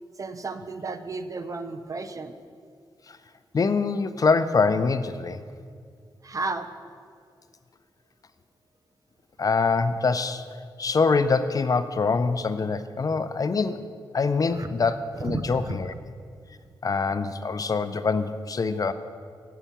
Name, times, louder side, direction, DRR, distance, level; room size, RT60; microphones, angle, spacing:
voice 1, 0.2-2.3 6.2-6.7 14.5-14.7 15.2-15.8, right 3 dB, 40° right, 9 dB, 0.6 m, -33 dB
voice 2, 3.5-5.4 9.4-10.4 10.8-13.8 14.1-15.9 16.8-18.9, left 4 dB, 45° left, 11 dB, 0.4 m, -24 dB
7.9 x 5.6 x 7.3 m, 2.2 s
cardioid pair, 85°, 9 cm